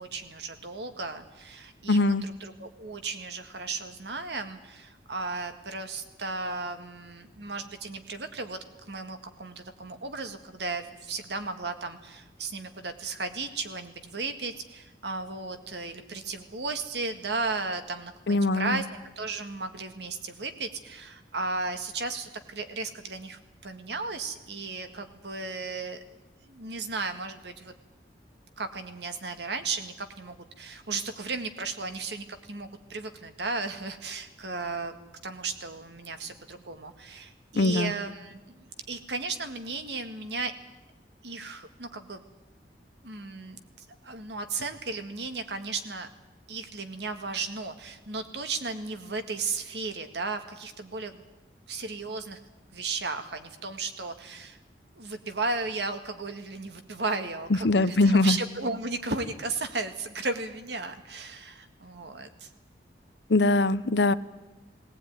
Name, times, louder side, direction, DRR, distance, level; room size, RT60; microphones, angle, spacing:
voice 1, 0.0-8.6 8.9-18.9 19.2-26.0 26.4-27.7 28.6-34.9 35.2-40.5 41.2-42.2 43.0-43.6 44.0-46.1 46.5-51.2 51.7-52.4 52.7-54.6 55.0-62.5, right 3 dB, 70° right, 8 dB, 1.9 m, -35 dB
voice 2, 1.9-2.2 18.3-18.8 37.6-37.9 57.6-58.4 63.3-64.1, left 2 dB, 75° left, 15 dB, 0.8 m, -22 dB
19.0 x 18.5 x 9.5 m, 1.1 s
head